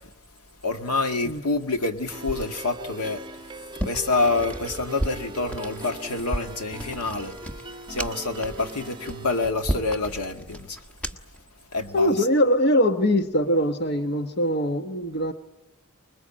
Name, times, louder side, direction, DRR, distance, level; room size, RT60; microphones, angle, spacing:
voice 1, 0.6-3.2 3.8-7.3 7.9-10.8 11.7-12.1, left 3 dB, 90° left, 1.9 m, -27 dB
sound 1, 2.1-9.5, right 2 dB, 20° right, 1.0 m, -40 dB
sound 2, 3.7-11.4, right 1 dB, 5° left, 1.2 m, -34 dB
voice 2, 11.9-15.3, equal, 50° left, 1.2 m, -22 dB
25.5 x 21.5 x 8.7 m
head